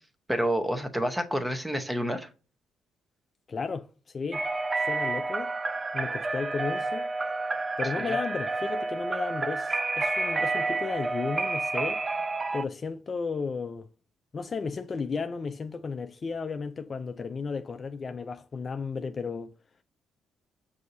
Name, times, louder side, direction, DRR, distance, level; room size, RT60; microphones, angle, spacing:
voice 1, 0.3-2.3 8.0-8.1, equal, 10° right, 0.8 m, -29 dB
voice 2, 3.5-4.4 4.8-5.5 5.9-7.1 7.8-12.0 12.5-13.9 14.3-19.5, left 5 dB, 40° left, 0.3 m, -34 dB
sound 1, 4.3-12.6, right 3 dB, 30° right, 0.4 m, -30 dB
6.2 x 2.6 x 2.7 m
cardioid pair, 90°, 0 cm